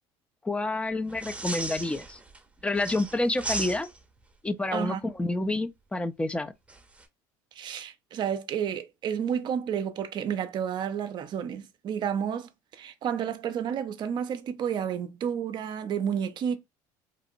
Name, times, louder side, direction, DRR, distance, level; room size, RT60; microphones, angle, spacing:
voice 1, 0.4-2.2 2.6-3.9 4.4-6.5, left 2 dB, 10° left, 0.4 m, -28 dB
sound 1, 1.1-2.4 2.7-4.2 6.7-7.0, right 2 dB, 10° right, 0.7 m, -36 dB
voice 2, 4.7-5.1 7.5-16.6, right 8 dB, 50° right, 0.5 m, -31 dB
3.0 x 2.7 x 2.5 m
supercardioid pair, 95°, 10 cm